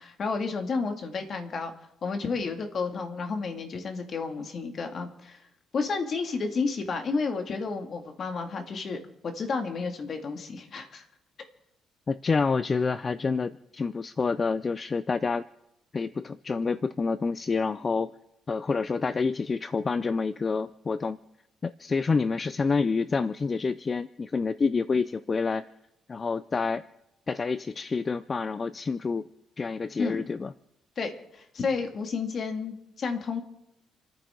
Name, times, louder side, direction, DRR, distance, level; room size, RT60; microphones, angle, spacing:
voice 1, 0.0-1.7 2.0-5.4 5.7-11.1 30.0-30.2 31.0-33.4, left 4 dB, 50° left, 5 dB, 2.3 m, -31 dB
voice 2, 12.1-15.4 15.9-18.1 18.5-21.2 21.6-25.6 26.1-26.8 27.3-29.3 29.6-30.5, left 4 dB, 35° left, 15 dB, 0.5 m, -28 dB
29.0 x 10.0 x 3.9 m, 0.84 s
cardioid pair, 90°, 0 cm